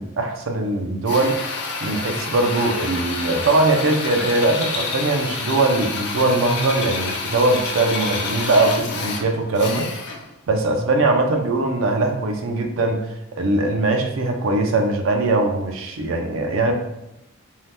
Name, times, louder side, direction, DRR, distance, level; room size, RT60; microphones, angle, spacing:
voice 1, 0.0-1.5 1.8-9.9 10.5-13.0 13.4-16.7, right 2 dB, 65° right, 4 dB, 0.4 m, -21 dB
Drill, 1.1-10.3, left 4 dB, 50° left, 0.4 m, -28 dB
2.7 x 2.1 x 3.3 m, 0.86 s
head